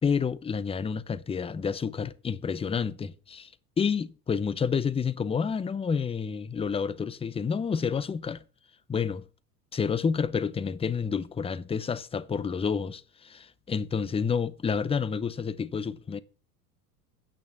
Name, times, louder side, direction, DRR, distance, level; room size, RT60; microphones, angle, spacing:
voice 1, 0.0-3.5 3.8-8.4 8.9-9.2 9.7-16.2, left 6 dB, 15° left, 0.6 m, -29 dB
8.5 x 6.3 x 7.1 m
hypercardioid pair, 85°, 46 cm